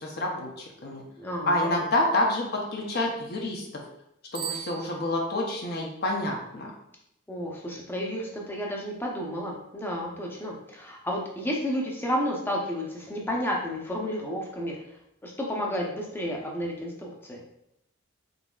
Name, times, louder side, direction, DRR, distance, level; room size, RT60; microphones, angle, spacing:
voice 1, 0.0-1.0 1.5-3.8 4.3-6.7, left 1 dB, 50° left, -1 dB, 0.7 m, -28 dB
voice 2, 1.2-1.8 7.3-14.8 15.2-17.4, equal, 10° left, -1 dB, 0.7 m, -31 dB
Bicycle bell, 4.3-5.6, right 10 dB, 50° right, 0.7 m, -38 dB
4.0 x 3.9 x 2.3 m, 0.81 s
head